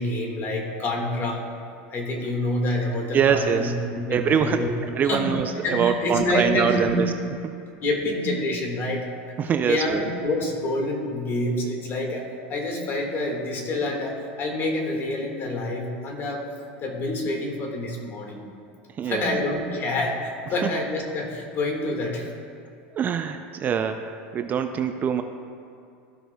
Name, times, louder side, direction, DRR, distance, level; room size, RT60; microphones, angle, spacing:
voice 1, 0.0-1.4 1.9-4.7 5.0-5.3 5.6-7.0 7.8-9.1 9.6-16.5 16.8-18.4 19.0-22.3, left 1 dB, 35° left, 1 dB, 1.7 m, -27 dB
voice 2, 3.1-3.7 4.1-4.7 5.0-7.1 9.4-10.0 19.0-19.3 22.9-25.2, right 7 dB, 30° right, 7 dB, 0.4 m, -24 dB
14.5 x 6.0 x 2.3 m, 2.5 s
supercardioid pair, 120°, 6 cm